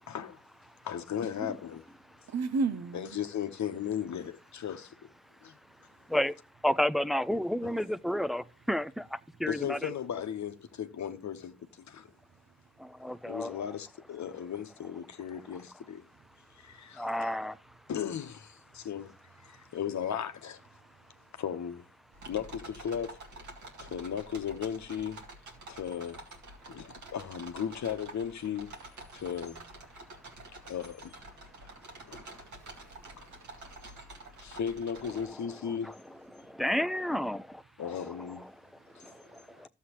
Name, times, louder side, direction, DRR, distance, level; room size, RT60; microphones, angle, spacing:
voice 1, 0.1-0.4 0.8-1.8 2.9-5.1 5.4-5.6 7.6-7.7 9.5-12.1 13.3-16.1 16.5-17.3 17.9-19.1 19.4-20.6 21.3-21.8 22.3-23.2 23.8-25.2 25.7-26.2 26.7-28.7 29.1-29.6 30.5-31.2 31.9-32.4 33.1-33.3 34.4-36.0 37.8-38.5 38.9-39.1, left 8 dB, 75° left, 0.9 m, -36 dB
voice 2, 2.3-3.2 31.6-31.7 32.1-32.7 33.1-33.2 39.2-39.6, right 4 dB, 65° right, 0.7 m, -34 dB
voice 3, 6.6-9.9 12.8-13.7 17.0-17.5 35.0-36.2 36.5-37.5 37.8-38.5, left 1 dB, ahead, 0.5 m, -32 dB
sound 1, 22.1-35.2, right 2 dB, 80° right, 2.1 m, -48 dB
12.5 x 7.4 x 2.9 m
supercardioid pair, 40°, 29 cm